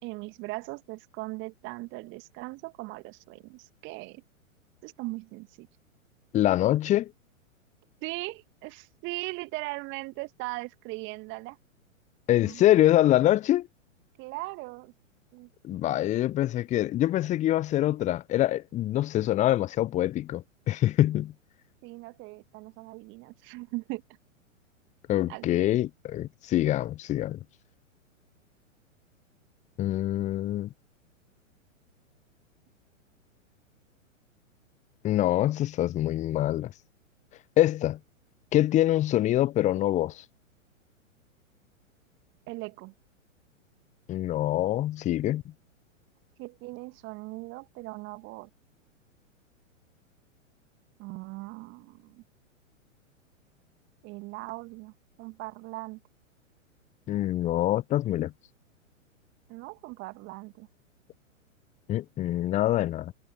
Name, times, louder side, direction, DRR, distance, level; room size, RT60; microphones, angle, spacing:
voice 1, 0.0-4.2 4.8-5.7 8.0-11.6 12.4-12.8 14.2-14.9 15.3-16.3 21.8-24.0 25.3-25.7 39.7-39.8 42.5-42.9 46.4-48.5 51.0-52.2 54.0-56.0 59.5-60.7, right 24 dB, 30° right, 2.1 m, -39 dB
voice 2, 6.3-7.1 12.3-13.7 15.6-21.3 25.1-27.4 29.8-30.7 35.0-36.7 37.6-38.0 38.5-40.2 44.1-45.4 57.1-58.3 61.9-63.1, left 14 dB, 20° left, 1.1 m, -25 dB
figure-of-eight pair, 110°, 40 cm